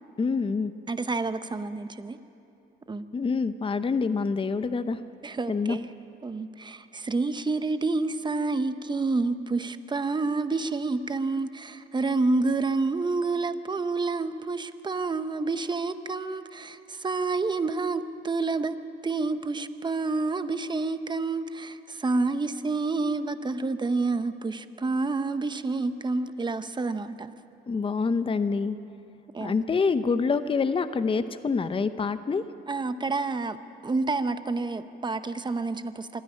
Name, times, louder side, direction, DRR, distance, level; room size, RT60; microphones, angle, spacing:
voice 1, 0.2-0.7 3.1-5.0 5.5-5.8 27.7-28.8 29.4-32.4, left 4 dB, 25° left, 12 dB, 0.7 m, -26 dB
voice 2, 0.9-2.2 2.9-3.1 5.2-5.9 6.2-18.8 19.0-27.3 29.3-29.6 32.7-33.6 33.8-36.2, right 3 dB, 20° right, 11 dB, 0.9 m, -28 dB
26.0 x 10.0 x 10.0 m, 2.7 s
cardioid pair, 90°, 20 cm